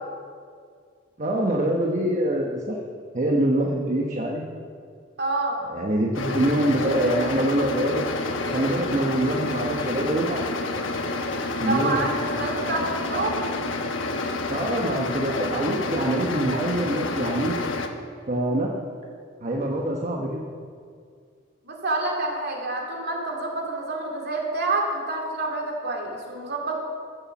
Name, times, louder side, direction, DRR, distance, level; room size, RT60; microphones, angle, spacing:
voice 1, 1.2-2.8 3.1-4.4 5.7-8.0 8.5-10.4 11.6-12.0 14.5-17.6 18.3-18.7 19.4-20.4, right 1 dB, 40° right, -1 dB, 1.1 m, -24 dB
voice 2, 5.2-5.6 11.6-13.4 21.6-26.8, right 2 dB, 55° right, 0 dB, 2.5 m, -28 dB
sound 1, 6.1-17.9, left 2 dB, 75° left, 1.1 m, -29 dB
14.5 x 7.1 x 7.1 m, 2.2 s
head